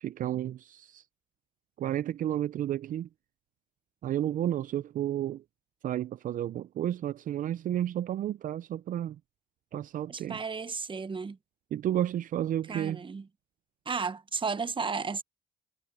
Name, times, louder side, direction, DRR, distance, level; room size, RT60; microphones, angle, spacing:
voice 1, 0.0-1.0 1.8-3.1 4.0-5.4 5.8-9.2 9.7-10.4 11.7-13.0, right 11 dB, 65° right, 0.5 m, -31 dB
voice 2, 10.1-11.4 12.7-13.3 13.8-15.2, right 5 dB, 35° right, 1.2 m, -33 dB
supercardioid pair, 60°, 15 cm